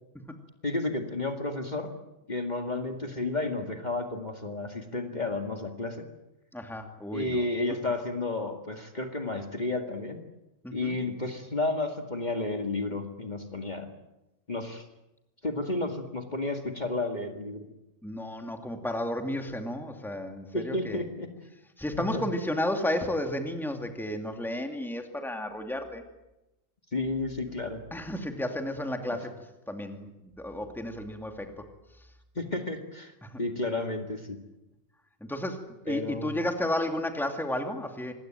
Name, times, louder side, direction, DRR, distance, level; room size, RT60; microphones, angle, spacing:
voice 1, 0.6-1.9 2.3-6.1 7.1-10.2 10.7-13.9 14.5-14.8 15.4-17.7 20.5-21.3 22.1-22.3 26.9-27.8 29.1-29.2 32.4-34.4 35.9-36.4, left 2 dB, 35° left, 4 dB, 2.2 m, -32 dB
voice 2, 6.5-7.4 10.6-11.0 18.0-21.0 21.8-26.0 27.9-31.6 33.2-33.4 35.2-38.1, left 1 dB, ahead, 5 dB, 2.4 m, -33 dB
26.0 x 21.0 x 9.1 m, 0.96 s
omnidirectional pair, 1.3 m